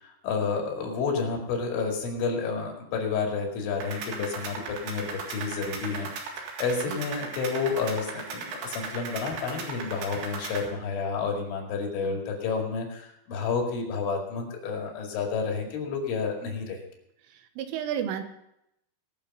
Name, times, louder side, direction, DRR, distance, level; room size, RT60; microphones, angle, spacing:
voice 1, 0.0-6.1 6.6-16.8, left 5 dB, 75° left, 1 dB, 4.6 m, -30 dB
sound 1, 3.8-10.7, right 4 dB, 70° right, 4.0 m, -37 dB
voice 2, 17.6-18.2, right 9 dB, 90° right, 8 dB, 3.6 m, -31 dB
20.5 x 6.9 x 5.4 m, 0.80 s
omnidirectional pair, 5.6 m